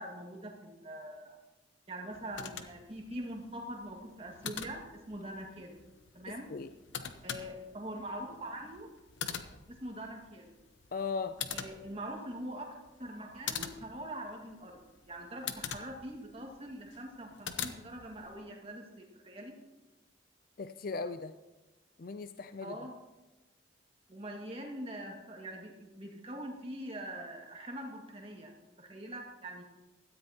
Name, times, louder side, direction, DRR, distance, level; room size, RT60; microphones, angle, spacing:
voice 1, 0.0-1.4 1.9-5.8 6.1-6.5 7.2-8.9 9.7-10.5 11.5-14.8 15.1-19.5 22.6-22.9 24.1-28.5 28.8-29.6, right 1 dB, 30° right, 0 dB, 2.0 m, -43 dB
sound 1, 2.1-18.4, left 8 dB, 70° left, 0.9 m, -44 dB
voice 2, 10.9-11.4 20.6-21.3 22.0-22.8, left 4 dB, 50° left, 10 dB, 0.4 m, -37 dB
17.0 x 13.5 x 2.9 m, 1.1 s
head